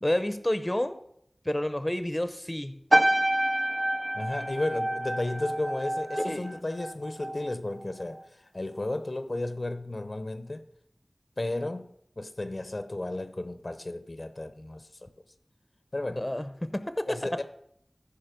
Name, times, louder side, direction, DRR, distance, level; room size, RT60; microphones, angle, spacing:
voice 1, 0.0-1.0 1.4-2.7 6.2-6.6 16.2-17.2, left 1 dB, 20° left, 0.7 m, -29 dB
sound 1, 2.9-7.5 7.8-8.2, right 1 dB, 35° right, 0.6 m, -28 dB
voice 2, 4.1-10.6 11.4-11.9 12.2-14.9 15.9-16.3 17.1-17.4, left 2 dB, 50° left, 0.7 m, -33 dB
14.5 x 5.2 x 5.2 m
wide cardioid pair, 55°, 0 cm